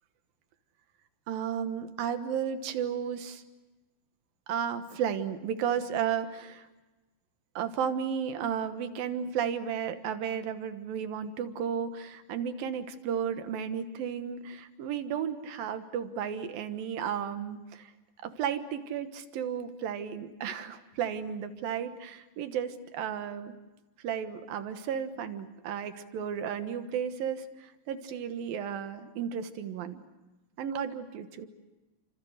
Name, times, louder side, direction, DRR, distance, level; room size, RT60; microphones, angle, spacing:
voice 1, 1.3-3.4 4.5-6.7 7.6-17.9 18.2-23.5 24.0-30.0 30.6-31.5, right 8 dB, 80° right, 9 dB, 3.1 m, -33 dB
30.0 x 26.0 x 6.5 m, 1.1 s
omnidirectional pair, 4.1 m